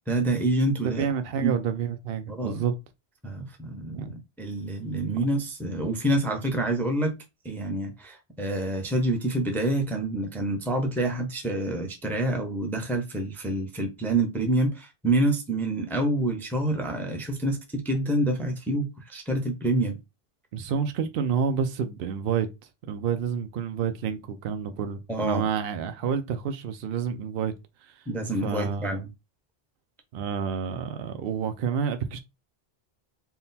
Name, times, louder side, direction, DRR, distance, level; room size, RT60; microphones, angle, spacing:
voice 1, 0.1-1.1 1.4-1.5 2.3-2.6 3.2-7.1 7.4-20.0 25.1-25.4 28.1-29.1, right 1 dB, ahead, 0.6 m, -27 dB
voice 2, 1.0-2.8 3.9-4.1 4.9-5.2 20.5-22.5 22.9-27.5 27.8-28.1 28.4-29.0 30.1-32.2, right 7 dB, 70° right, 0.7 m, -29 dB
3.7 x 2.3 x 4.0 m
omnidirectional pair, 1.1 m